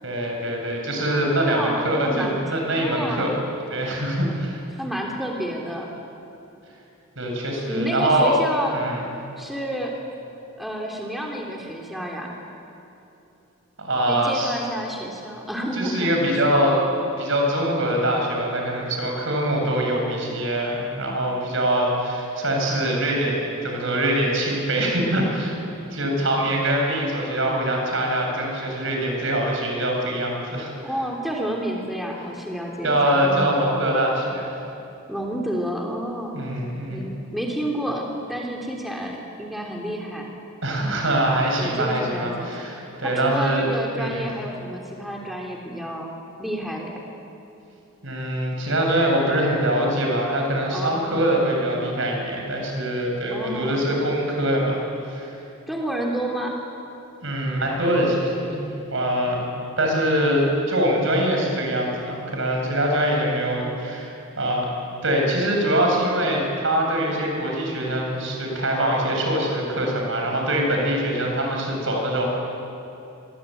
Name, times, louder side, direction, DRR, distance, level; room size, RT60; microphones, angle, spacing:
voice 1, 0.0-3.4 3.7-4.6 7.2-8.4 8.7-9.0 13.8-14.5 15.7-16.9 17.2-25.5 25.9-30.7 32.8-34.5 36.3-37.0 40.6-43.7 44.0-44.3 48.0-54.8 55.1-55.4 57.2-59.5 59.8-64.7 65.0-72.3, right 1 dB, 65° right, 0 dB, 7.6 m, -23 dB
voice 2, 1.4-2.4 2.7-3.4 4.8-5.9 7.7-8.8 9.4-9.9 10.6-12.4 14.1-16.1 30.8-33.5 35.1-36.4 36.9-40.3 41.6-42.5 43.0-46.1 46.4-47.0 50.7-51.3 53.3-53.8 55.7-56.6, equal, ahead, -1 dB, 3.2 m, -30 dB
28.0 x 23.0 x 9.3 m, 2.9 s
head